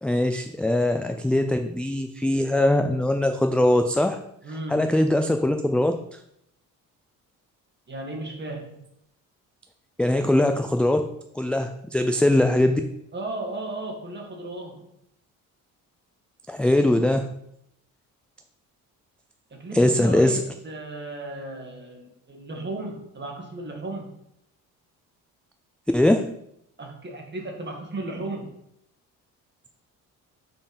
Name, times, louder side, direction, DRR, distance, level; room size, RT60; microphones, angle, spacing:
voice 1, 0.0-4.2 4.7-5.9 10.0-11.0 11.3-12.8 16.5-17.3 19.7-20.4 25.9-26.2, left 1 dB, 5° left, 6 dB, 0.4 m, -21 dB
voice 2, 4.4-4.9 7.9-8.8 13.1-14.9 19.5-24.1 26.8-28.5, right 2 dB, 30° right, 1 dB, 1.9 m, -35 dB
5.3 x 4.6 x 5.4 m, 0.77 s
cardioid pair, 90°, 34 cm